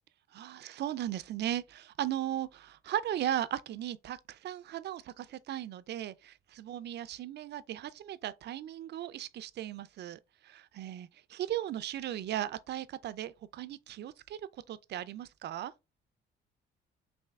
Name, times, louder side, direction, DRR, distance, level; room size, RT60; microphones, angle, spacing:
voice 1, 0.3-14.4 14.7-15.7, right 12 dB, 60° right, 0.4 m, -37 dB
3.5 x 2.6 x 3.2 m
cardioid pair, 90°, 20 cm